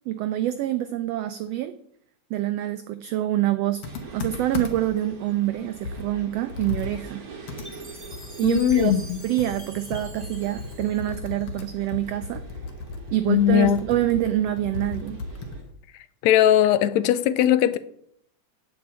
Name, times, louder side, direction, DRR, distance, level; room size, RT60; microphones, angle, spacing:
voice 1, 0.1-1.7 2.3-3.9 4.1-7.2 8.4-8.9 9.2-12.4 13.1-15.2, right 14 dB, 90° right, 1.4 m, -26 dB
Computer keyboard, 3.8-5.0 5.4-5.5 5.8-15.7, left 3 dB, 60° left, 1.8 m, -36 dB
sound 1, 3.8-15.6, right 4 dB, 40° right, 1.5 m, -45 dB
Chime, 7.6-11.8, equal, 10° right, 2.1 m, -46 dB
voice 2, 8.4-9.2 13.3-13.8 16.2-17.8, left 10 dB, 80° left, 1.8 m, -19 dB
8.5 x 6.1 x 8.1 m
omnidirectional pair, 3.4 m